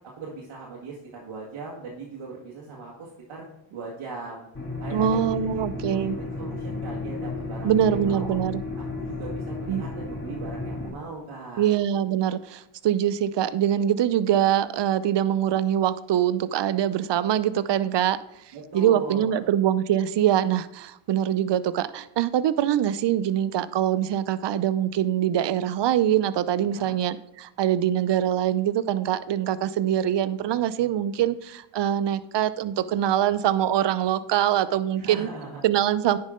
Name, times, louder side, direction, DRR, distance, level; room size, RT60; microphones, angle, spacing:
voice 1, 0.2-4.5 4.8-5.2 5.5-8.3 8.8-11.7 18.5-19.5 26.6-26.9 35.0-35.6, right 3 dB, 75° right, -4 dB, 1.7 m, -39 dB
sound 1, 4.5-10.9, left 3 dB, 25° left, 2.5 m, -33 dB
voice 2, 4.9-6.2 7.6-8.6 9.7-9.8 11.6-18.2 18.7-35.3 35.6-36.2, right 10 dB, 60° right, 16 dB, 0.6 m, -23 dB
9.7 x 5.6 x 3.7 m, 0.80 s
supercardioid pair, 50°, 49 cm